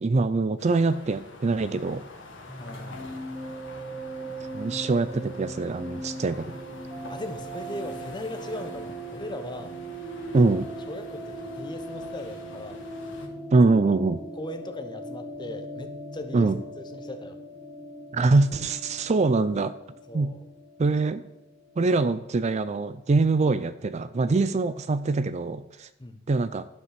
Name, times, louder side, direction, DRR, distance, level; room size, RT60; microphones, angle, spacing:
voice 1, 0.0-2.0 4.5-6.5 10.3-10.7 13.5-14.2 16.3-16.6 18.1-19.7 20.1-20.3 20.8-21.2 21.8-25.9 26.3-26.7, right 3 dB, 35° right, 13 dB, 0.4 m, -23 dB
sound 1, 0.6-13.3, left 2 dB, 65° left, 1.7 m, -46 dB
sound 2, 2.5-22.0, right 1 dB, 10° right, 3.0 m, -39 dB
voice 2, 2.6-3.1 7.1-9.7 10.9-12.8 14.4-16.5 16.8-17.4 20.1-20.4 26.0-26.2, left 1 dB, 25° left, 8 dB, 0.9 m, -38 dB
12.5 x 5.7 x 5.9 m, 0.87 s
head